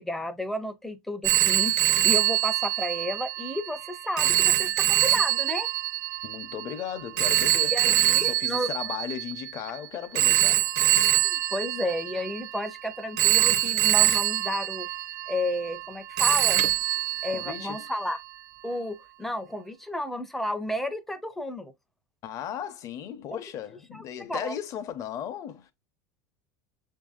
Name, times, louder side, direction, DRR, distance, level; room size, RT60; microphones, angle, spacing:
voice 1, 0.0-5.7 7.7-8.7 11.2-14.9 15.3-16.6 17.2-18.2 18.6-21.7 23.3-23.4 23.9-24.6, left 1 dB, 5° left, 0.5 m, -32 dB
Telephone, 1.2-9.6 10.2-12.7 13.2-15.9 16.2-17.9, right 14 dB, 45° right, 0.5 m, -24 dB
voice 2, 6.2-10.7 17.3-17.8 22.2-25.7, left 9 dB, 35° left, 0.7 m, -36 dB
6.7 x 2.7 x 2.3 m
supercardioid pair, 150°, 9 cm